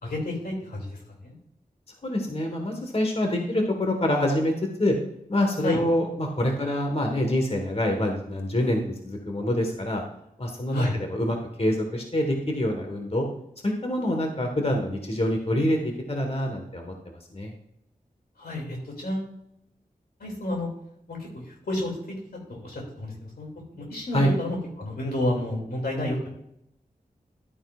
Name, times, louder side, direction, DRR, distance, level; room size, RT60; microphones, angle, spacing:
voice 1, 0.0-1.3 5.6-5.8 10.7-10.9 18.4-19.3 20.2-20.7 21.1-21.9 22.3-26.3, left 1 dB, 85° left, -1 dB, 2.8 m, -30 dB
voice 2, 2.0-4.5 4.8-5.0 5.3-10.0 10.4-13.3 13.6-17.5 24.1-24.3, left 1 dB, 40° left, 3 dB, 1.6 m, -26 dB
11.5 x 8.9 x 2.5 m, 0.78 s
cardioid pair, 50°, 15 cm